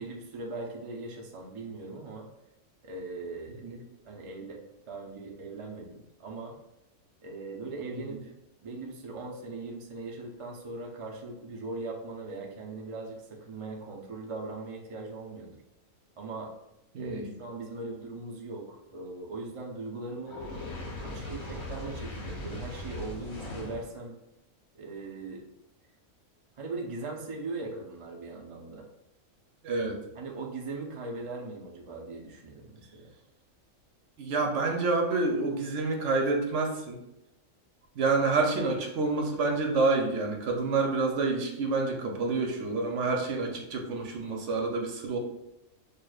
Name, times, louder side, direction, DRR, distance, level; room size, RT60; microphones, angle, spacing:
voice 1, 0.0-2.3 2.8-3.6 4.0-6.6 7.2-8.3 8.6-15.6 16.2-16.5 17.0-20.4 21.0-24.2 24.7-25.4 26.6-28.9 30.2-33.1, right 3 dB, 45° right, -1 dB, 0.4 m, -40 dB
voice 2, 16.9-17.3 29.6-30.0 34.2-37.0 38.0-45.2, right 3 dB, 65° right, 2 dB, 1.0 m, -28 dB
Fire, 20.3-23.9, left 2 dB, 55° left, 1.3 m, -39 dB
6.2 x 2.5 x 2.3 m, 0.88 s
omnidirectional pair, 1.4 m